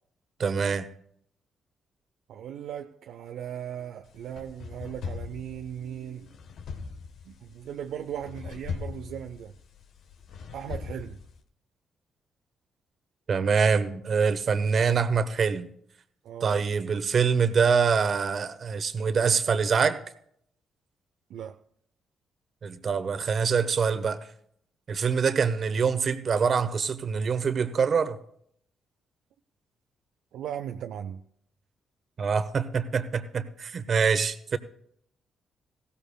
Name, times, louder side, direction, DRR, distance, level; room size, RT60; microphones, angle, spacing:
voice 1, 0.4-0.8 13.3-15.7 16.4-20.0 22.6-24.2 24.9-28.2 32.2-34.6, right 6 dB, 55° right, 1.1 m, -25 dB
voice 2, 2.3-6.3 7.3-9.5 10.5-11.2 16.2-16.7 21.3-21.6 30.3-31.2, right 9 dB, 75° right, 0.5 m, -37 dB
sound 1, 4.0-11.4, left 5 dB, 70° left, 1.2 m, -40 dB
18.5 x 16.0 x 2.3 m
hypercardioid pair, 45°, 0 cm